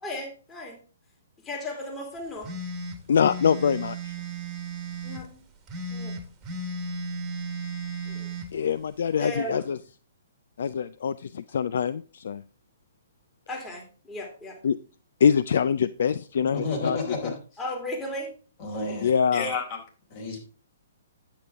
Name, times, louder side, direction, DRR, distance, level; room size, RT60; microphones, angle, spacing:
voice 1, 0.0-0.8 1.4-2.5 5.0-5.4 5.9-6.2 8.1-8.3 9.2-9.6 13.5-14.6 17.6-18.3, left 1 dB, 15° left, 0 dB, 2.6 m, -35 dB
sound 1, 2.4-5.2 5.7-8.5, right 2 dB, 20° right, 1.4 m, -35 dB
voice 2, 3.1-4.1 8.5-9.8 10.6-12.4 14.6-14.8 15.2-17.3 19.0-19.5, left 7 dB, 65° left, 15 dB, 0.4 m, -24 dB
voice 3, 16.5-17.3 18.6-19.8 20.1-20.4, left 3 dB, 40° left, 1 dB, 4.1 m, -31 dB
9.6 x 7.9 x 3.5 m, 0.37 s
figure-of-eight pair, 125°, 0 cm